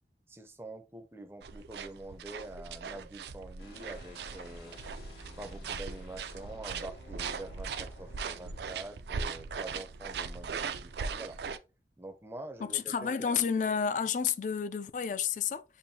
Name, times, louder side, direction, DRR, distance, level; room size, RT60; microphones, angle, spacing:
voice 1, 0.3-4.8 5.4-11.4 12.0-13.3, right 2 dB, 15° right, 0.5 m, -46 dB
sound 1, 1.4-11.6, right 5 dB, 70° right, 0.4 m, -39 dB
sound 2, 3.6-8.8, left 1 dB, 70° left, 1.6 m, -52 dB
voice 2, 12.6-15.6, left 7 dB, 45° left, 0.3 m, -30 dB
7.1 x 2.5 x 2.7 m
head